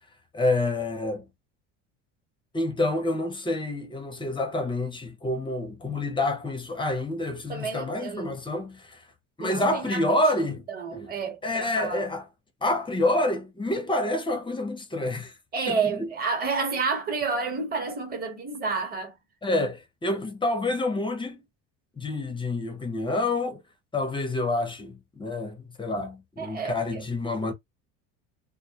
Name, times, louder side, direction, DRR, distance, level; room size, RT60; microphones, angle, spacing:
voice 1, 0.3-1.3 2.5-9.0 9.4-10.6 10.9-11.0 11.4-12.2 12.6-15.3 15.7-16.1 19.4-21.4 22.0-23.6 23.9-27.5, left 2 dB, 15° left, 0.5 m, -28 dB
voice 2, 7.5-8.4 9.4-10.0 10.7-12.1 15.5-19.2 26.4-27.1, right 4 dB, 25° right, 0.9 m, -30 dB
2.2 x 2.1 x 2.7 m
supercardioid pair, 110°, 37 cm